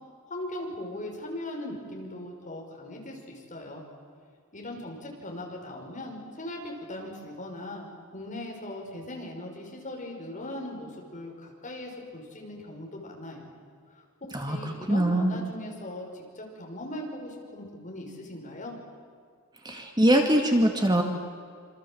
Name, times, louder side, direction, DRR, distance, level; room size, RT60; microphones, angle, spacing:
voice 1, 0.3-3.8 4.5-7.9 8.1-13.5 14.2-18.7, left 1 dB, 35° left, 0 dB, 6.0 m, -39 dB
voice 2, 14.3-15.4 19.6-21.0, right 1 dB, 20° right, 3 dB, 2.2 m, -23 dB
27.0 x 26.0 x 7.9 m, 2.2 s
head